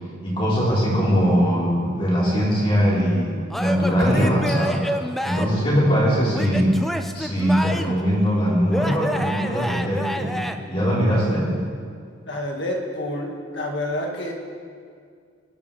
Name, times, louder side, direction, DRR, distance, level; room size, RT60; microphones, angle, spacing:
voice 1, 0.2-4.8 5.2-6.8 7.1-10.4 10.7-11.5, equal, 25° left, -7 dB, 4.3 m, -21 dB
Male speech man speaking / Yell / Laughter, 3.5-5.6 6.3-8.0 8.7-10.5, equal, ahead, 0.4 m, -28 dB
voice 2, 12.3-14.3, left 1 dB, 60° left, 0 dB, 2.1 m, -28 dB
23.0 x 11.0 x 3.5 m, 2.1 s
head